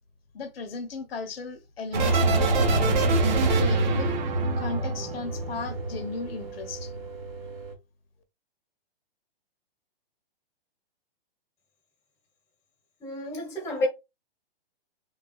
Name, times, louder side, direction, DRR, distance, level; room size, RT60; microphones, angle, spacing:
voice 1, 0.3-3.2 3.5-4.2 4.6-6.9, left 4 dB, 75° left, 0.8 m, -36 dB
sound 1, 1.9-6.3 6.6-7.2, right 2 dB, 50° right, 0.7 m, -24 dB
sound 2, 2.7-7.8, right 4 dB, 70° right, 1.2 m, -40 dB
voice 2, 13.0-13.9, left 1 dB, 10° left, 1.2 m, -30 dB
3.5 x 2.3 x 2.4 m
hypercardioid pair, 160°, 30 cm